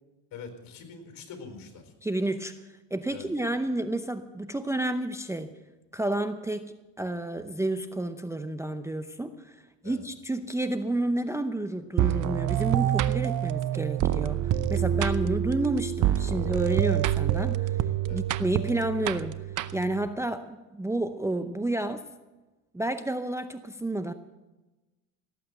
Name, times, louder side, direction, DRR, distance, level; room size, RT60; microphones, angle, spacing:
voice 1, 0.3-1.9 3.1-3.3 9.8-10.0 18.0-18.2, left 5 dB, 60° left, 6 dB, 4.4 m, -44 dB
voice 2, 2.0-2.5 2.9-5.5 5.9-17.8 18.1-19.3 19.7-22.0 22.7-24.1, right 1 dB, 5° right, 9 dB, 0.7 m, -30 dB
sound 1, 12.0-20.1, right 11 dB, 50° right, 0.8 m, -27 dB
18.0 x 8.5 x 7.8 m, 1.1 s
supercardioid pair, 95°, 39 cm